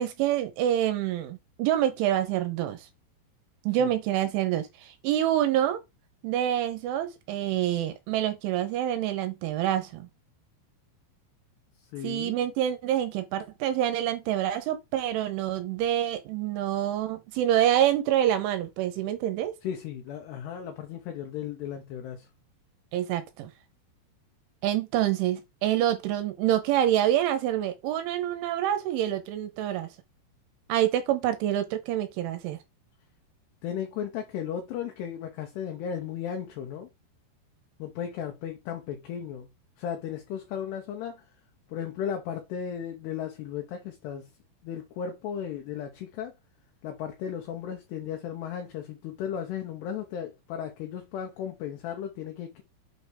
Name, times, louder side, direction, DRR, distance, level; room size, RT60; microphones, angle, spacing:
voice 1, 0.0-2.9 3.7-5.8 6.2-10.1 12.0-19.5 22.9-23.5 24.6-29.9 30.7-32.6, right 11 dB, 80° right, 3.1 m, -27 dB
voice 2, 11.9-12.3 19.6-22.3 33.6-36.9 37.8-39.5 39.8-41.2 41.7-44.3 44.6-46.3 46.8-52.6, left 8 dB, 75° left, 2.6 m, -35 dB
7.9 x 3.3 x 5.5 m
omnidirectional pair, 5.8 m